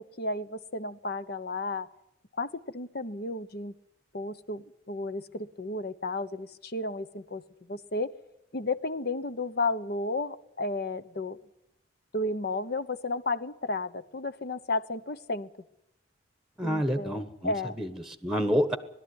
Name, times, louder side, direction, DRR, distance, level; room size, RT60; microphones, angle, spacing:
voice 1, 0.0-1.9 2.4-3.7 4.1-7.4 7.7-8.1 8.5-11.4 12.1-15.5 16.6-17.8, left 2 dB, 50° left, 12 dB, 1.0 m, -33 dB
voice 2, 16.6-18.8, equal, ahead, 10 dB, 1.2 m, -29 dB
21.0 x 12.5 x 9.6 m, 0.84 s
head